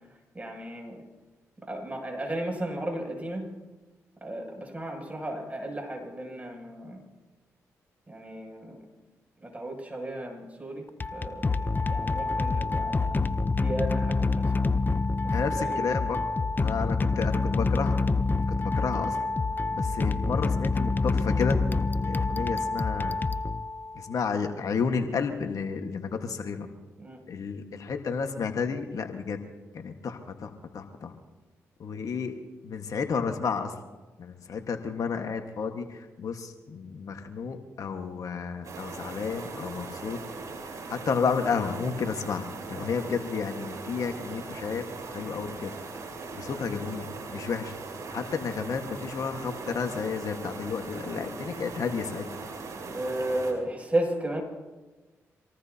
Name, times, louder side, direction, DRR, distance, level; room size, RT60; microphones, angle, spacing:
voice 1, 0.3-1.0 1.6-3.5 4.2-7.0 8.1-8.8 9.4-10.8 11.1-13.2 13.6-14.7 15.2-15.9 27.0-27.2 52.8-54.4, right 1 dB, 25° right, 1 dB, 7.7 m, -34 dB
sound 1, 10.9-24.1, left 3 dB, 30° left, 0.8 m, -27 dB
voice 2, 15.3-16.2 16.6-18.0 18.6-19.2 19.7-21.6 22.0-23.2 23.9-26.7 27.3-29.4 29.7-31.1 31.8-32.4 32.6-33.7 34.2-40.2 40.9-44.8 45.1-45.7 46.3-47.7 48.1-52.3, left 5 dB, 65° left, 5 dB, 1.6 m, -31 dB
sound 2, 38.6-53.5, right 4 dB, 60° right, 5.5 m, -40 dB
26.0 x 18.5 x 2.9 m, 1.2 s
supercardioid pair, 50°, 6 cm